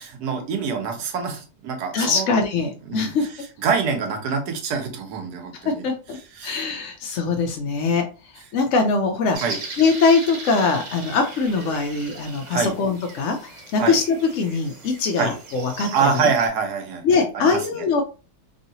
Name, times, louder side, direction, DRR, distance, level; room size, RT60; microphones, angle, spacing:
voice 1, 0.0-2.3 2.9-5.8 6.3-6.6 9.4-9.6 12.5-12.7 13.8-14.0 15.2-15.3 15.9-17.8, right 5 dB, 80° right, 4 dB, 1.3 m, -25 dB
voice 2, 1.9-3.3 5.7-6.2 6.4-8.0 8.3-9.4 9.8-16.3 17.0-18.0, left 4 dB, 70° left, 4 dB, 0.7 m, -22 dB
sound 1, 9.3-16.5, right 3 dB, 65° right, 1.4 m, -38 dB
3.0 x 2.7 x 2.7 m, 0.34 s
omnidirectional pair, 1.7 m